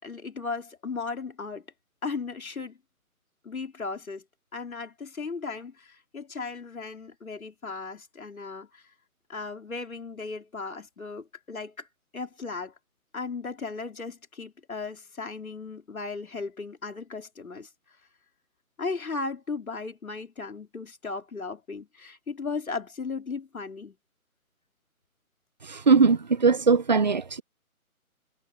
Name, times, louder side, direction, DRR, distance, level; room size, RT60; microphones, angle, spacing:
voice 1, 0.0-1.6 2.0-2.8 3.4-4.2 4.5-8.8 9.3-11.9 12.1-12.7 13.1-17.7 18.8-24.0, left 4 dB, 70° left, 4.5 m, -36 dB
voice 2, 25.7-27.4, right 5 dB, 30° right, 1.0 m, -20 dB
figure-of-eight pair, 165°, 44 cm